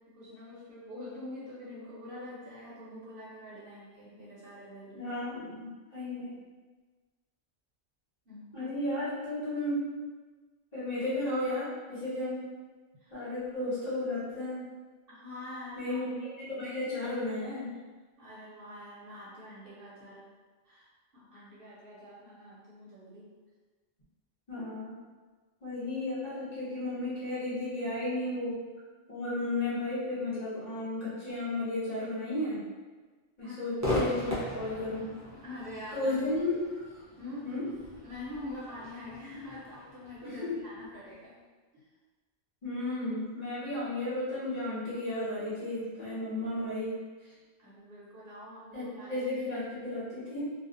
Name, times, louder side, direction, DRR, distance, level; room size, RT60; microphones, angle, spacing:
voice 1, 0.1-5.2 8.3-8.7 13.0-13.2 15.1-16.0 18.2-20.2 20.6-23.3 33.4-33.7 35.3-36.3 37.2-37.5 38.0-41.3 41.7-41.9 47.6-49.6, left 1 dB, 55° right, -8 dB, 0.8 m, -45 dB
voice 2, 5.0-6.4 8.5-9.9 10.7-12.5 13.1-14.7 15.8-16.1 16.5-17.7 24.5-25.0 25.6-28.6 29.1-32.6 33.4-35.1 35.9-36.6 37.4-37.7 40.2-40.6 42.6-47.0 48.7-50.5, left 2 dB, 40° left, -12 dB, 1.0 m, -33 dB
Crowd / Fireworks, 33.8-41.1, left 1 dB, 20° right, 0.4 m, -38 dB
2.4 x 2.3 x 2.5 m, 1.4 s
omnidirectional pair, 1.2 m